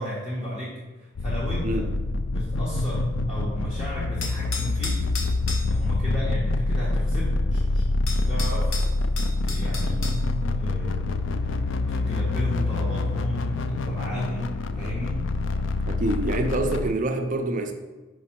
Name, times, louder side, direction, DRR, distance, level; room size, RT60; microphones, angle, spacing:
voice 1, 0.0-1.9 2.3-5.0 5.7-8.7 9.4-10.0 10.6-11.0 11.9-15.2, equal, 25° left, -6 dB, 1.2 m, -34 dB
sound 1, 1.2-16.9, left 2 dB, 70° left, 0.4 m, -26 dB
sound 2, 4.2-5.7 7.6-7.7 8.1-10.2, left 4 dB, 90° left, 1.1 m, -34 dB
voice 2, 15.9-17.7, right 1 dB, 40° right, 4 dB, 0.5 m, -26 dB
5.6 x 5.1 x 4.4 m, 1.2 s
head